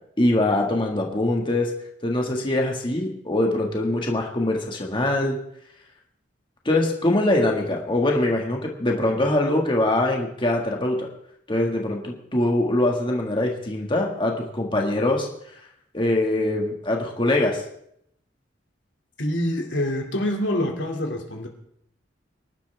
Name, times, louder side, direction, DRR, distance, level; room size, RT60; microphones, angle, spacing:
voice 1, 0.2-1.7 2.0-5.4 6.7-11.1 11.5-15.3 15.9-17.6, left 1 dB, 30° left, 0 dB, 1.8 m, -23 dB
voice 2, 19.2-21.5, left 1 dB, 85° left, 2 dB, 2.5 m, -26 dB
24.5 x 11.5 x 3.5 m, 0.73 s
head